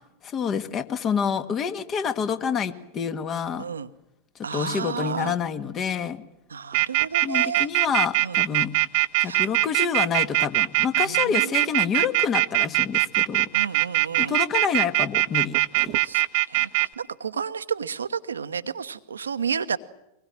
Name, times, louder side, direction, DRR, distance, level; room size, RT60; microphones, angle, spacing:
voice 1, 0.2-3.7 4.5-6.2 7.2-8.7 9.2-13.5 14.2-15.6 15.8-15.9, left 7 dB, 30° left, 10 dB, 1.7 m, -28 dB
voice 2, 3.6-3.9 4.4-5.4 6.5-7.7 8.2-8.4 9.2-9.5 11.0-11.7 13.5-14.4 16.0-19.8, right 6 dB, 70° right, 12 dB, 1.1 m, -32 dB
sound 1, 6.7-16.9, right 21 dB, 45° right, 0.9 m, -21 dB
25.0 x 20.5 x 9.0 m, 0.88 s
figure-of-eight pair, 90°, 0 cm